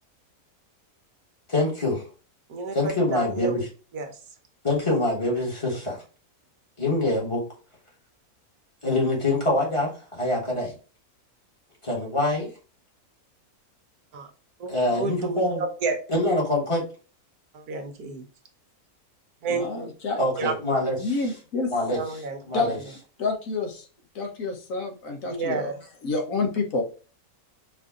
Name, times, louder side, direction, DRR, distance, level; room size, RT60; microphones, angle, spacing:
voice 1, 1.5-2.0 2.7-3.6 4.6-6.0 6.8-7.4 8.8-10.7 11.8-12.5 14.7-15.6 16.1-16.8 20.2-21.2 21.7-22.0 22.5-22.8, left 2 dB, 20° left, -3 dB, 1.5 m, -25 dB
voice 2, 2.5-3.6 3.9-4.2 14.1-14.3 14.6-16.0 17.5-18.2 19.4-19.9 20.4-20.5 21.9-22.4 25.3-25.8, right 4 dB, 80° right, 5 dB, 1.4 m, -30 dB
voice 3, 19.5-20.2 21.0-21.7 22.5-22.7 23.2-23.8 24.1-25.7 26.0-26.8, left 3 dB, 65° left, 2 dB, 1.3 m, -28 dB
4.9 x 2.6 x 3.6 m, 0.36 s
omnidirectional pair, 1.6 m